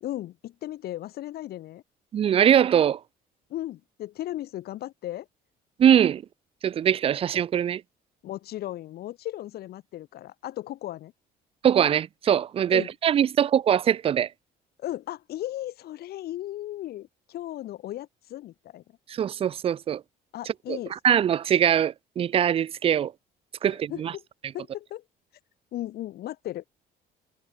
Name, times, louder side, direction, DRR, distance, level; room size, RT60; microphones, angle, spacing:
voice 1, 0.0-1.8 3.5-5.3 8.2-11.1 12.7-12.9 14.8-18.8 20.3-21.0 23.7-24.2 24.5-25.0 25.7-26.6, left 14 dB, 70° left, 1.8 m, -36 dB
voice 2, 2.1-3.0 5.8-6.2 6.6-7.8 11.6-14.3 19.1-20.0 20.7-20.8 21.0-23.1 23.6-24.1, right 9 dB, 35° right, 0.4 m, -22 dB
cardioid pair, 110°, 17 cm